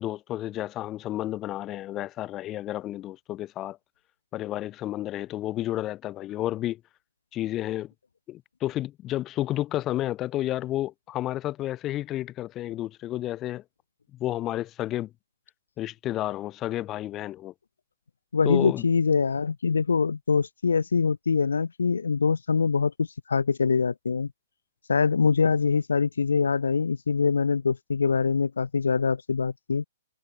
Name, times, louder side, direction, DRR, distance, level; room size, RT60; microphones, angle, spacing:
voice 1, 0.0-3.8 4.3-6.8 7.3-7.9 8.3-13.6 14.1-15.1 15.8-17.5 18.4-18.8, left 14 dB, 25° left, 6.0 m, -31 dB
voice 2, 18.3-24.3 24.9-29.8, left 5 dB, 80° left, 2.2 m, -24 dB
figure-of-eight pair, 120°, 0 cm